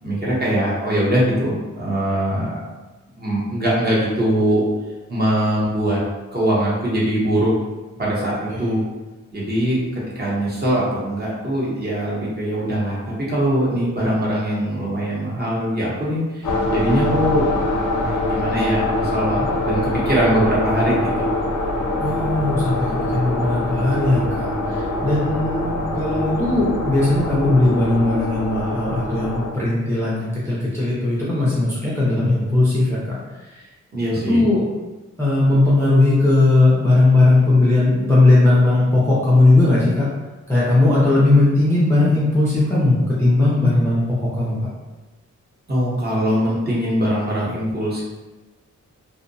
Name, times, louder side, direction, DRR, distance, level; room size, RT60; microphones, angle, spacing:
voice 1, 0.0-2.6 3.2-4.6 5.1-6.0 6.3-7.5 8.0-8.8 9.3-17.6 18.0-21.3 33.9-34.5 45.7-48.0, right 1 dB, 30° right, -6 dB, 0.7 m, -22 dB
sound 1, 16.4-29.5, left 1 dB, 85° left, 0.5 m, -23 dB
voice 2, 22.0-33.7 34.3-34.8 35.2-40.1 40.5-44.6, left 2 dB, 10° left, -8 dB, 0.4 m, -18 dB
2.6 x 2.0 x 2.6 m, 1.1 s
wide cardioid pair, 175°, 31 cm